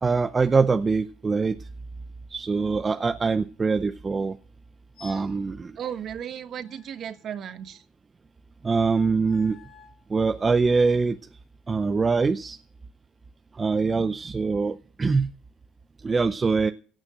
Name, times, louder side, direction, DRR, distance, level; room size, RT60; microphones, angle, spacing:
voice 1, 0.0-1.6 2.3-4.4 5.0-5.8 8.6-9.6 10.1-11.2 11.7-12.6 13.5-15.3 16.0-16.7, right 4 dB, 20° right, 0.6 m, -23 dB
sound 1, 4.9-5.4 6.6-7.8 9.2-10.1, left 4 dB, 55° left, 5.5 m, -51 dB
voice 2, 5.8-7.8, right 9 dB, 45° right, 1.4 m, -35 dB
17.0 x 6.3 x 7.6 m
supercardioid pair, 105°, 0 cm